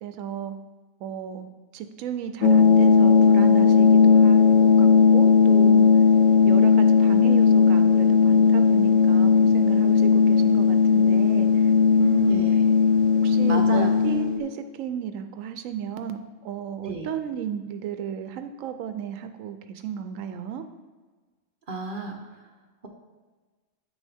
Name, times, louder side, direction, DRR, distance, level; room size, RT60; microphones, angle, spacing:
voice 1, 0.0-0.6 1.0-4.5 4.8-5.9 6.4-11.7 12.0-12.5 13.2-20.7, right 8 dB, 90° right, 9 dB, 1.0 m, -34 dB
sound 1, 2.4-14.4, left 5 dB, 85° left, 1.1 m, -17 dB
voice 2, 12.3-12.6 13.5-13.9 16.8-17.1 21.7-22.5, right 2 dB, 45° right, 2 dB, 1.0 m, -33 dB
8.6 x 6.2 x 3.4 m, 1.3 s
omnidirectional pair, 1.3 m